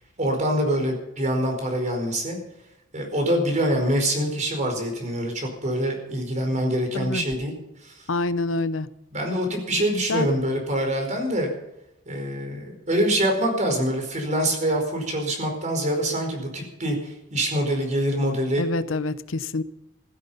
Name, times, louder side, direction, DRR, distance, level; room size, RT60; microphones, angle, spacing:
voice 1, 0.2-2.4 2.9-7.5 7.8-8.0 9.1-11.5 12.1-18.6, equal, 40° right, 4.7 m, -25 dB
voice 2, 8.1-8.9 10.1-10.3 18.6-19.6, left 3 dB, 85° left, 0.8 m, -26 dB
15.5 x 14.5 x 5.6 m
head